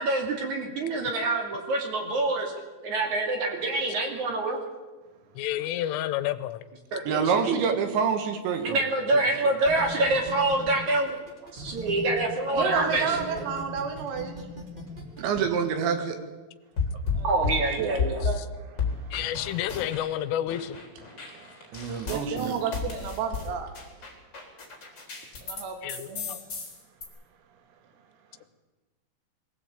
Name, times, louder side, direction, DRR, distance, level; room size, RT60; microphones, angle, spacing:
voice 1, 0.0-2.5 2.8-4.6 6.9-7.2 7.5-7.6 8.6-11.2 11.5-13.1 13.3-13.4 17.2-18.2, right 2 dB, 40° right, 3 dB, 3.5 m, -26 dB
voice 2, 5.4-6.6 19.1-20.8 25.8-26.4, left 12 dB, 80° left, 14 dB, 3.3 m, -30 dB
voice 3, 7.1-8.8 9.4-9.5 15.2-16.2 21.7-22.6, right 6 dB, 65° right, 7 dB, 3.9 m, -27 dB
sound 1, 9.6-12.2 12.6-15.4, equal, 15° right, 1.7 m, -40 dB
voice 4, 12.5-14.4 17.2-17.5 17.8-19.3 21.1-23.7 25.4-26.4, right 6 dB, 85° right, 6 dB, 4.6 m, -33 dB
sound 2, 16.8-18.4 18.8-20.2 20.5-25.6 25.9-27.0, left 5 dB, 25° left, 3.9 m, -32 dB
22.5 x 16.0 x 8.5 m, 1.2 s
omnidirectional pair, 5.9 m